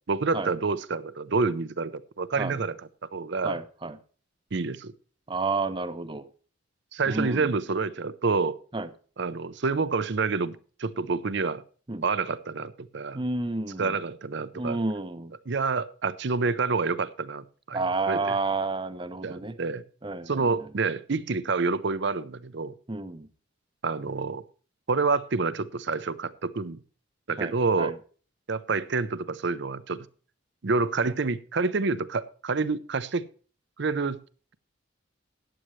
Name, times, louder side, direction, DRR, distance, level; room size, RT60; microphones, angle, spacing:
voice 1, 0.1-2.8 3.1-3.6 4.5-4.9 6.9-8.6 9.2-11.6 12.0-13.2 13.8-14.8 15.5-18.4 19.2-19.8 20.3-22.7 23.8-24.4 24.9-26.8 27.3-28.0 28.5-30.1 30.6-33.3 33.8-34.2, right 4 dB, 60° right, 16 dB, 0.6 m, -28 dB
voice 2, 3.4-4.0 5.3-6.3 7.1-7.5 8.7-8.9 11.9-12.0 13.1-13.9 14.5-15.3 17.7-19.6 20.0-20.5 22.9-23.3 27.4-27.9, right 3 dB, 25° right, 12 dB, 0.7 m, -30 dB
14.0 x 9.9 x 3.1 m, 0.40 s
head